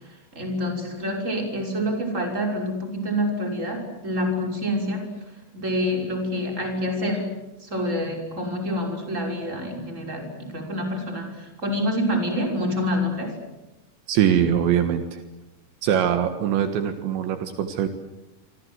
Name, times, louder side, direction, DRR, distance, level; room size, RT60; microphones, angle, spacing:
voice 1, 0.3-5.1 5.5-7.3 7.6-11.4 11.6-13.4, equal, 15° right, 3 dB, 5.8 m, -27 dB
voice 2, 14.1-15.2 15.8-17.9, right 9 dB, 75° right, 8 dB, 3.7 m, -22 dB
27.0 x 25.5 x 8.1 m, 1.0 s
omnidirectional pair, 5.4 m